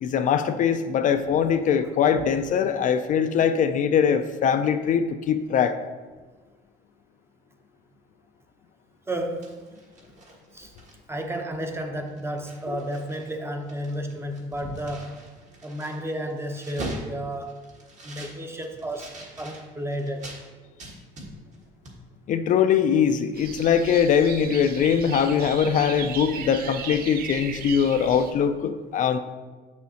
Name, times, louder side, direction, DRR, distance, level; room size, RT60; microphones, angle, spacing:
voice 1, 0.0-5.8 22.3-29.2, left 7 dB, 50° left, 9 dB, 0.4 m, -22 dB
voice 2, 9.1-9.5 10.5-10.7 11.1-15.1 15.6-17.6 18.0-19.1 19.4-20.3, right 1 dB, 15° right, 5 dB, 0.7 m, -32 dB
sound 1, 9.2-11.2 11.6-11.8 12.1-13.3 13.6-20.4 20.8-21.6 21.9-22.0, right 1 dB, 45° right, 1.5 m, -42 dB
sound 2, 23.3-28.3, right 8 dB, 60° right, 0.5 m, -37 dB
7.1 x 6.2 x 2.8 m, 1.4 s
cardioid pair, 110°, 17 cm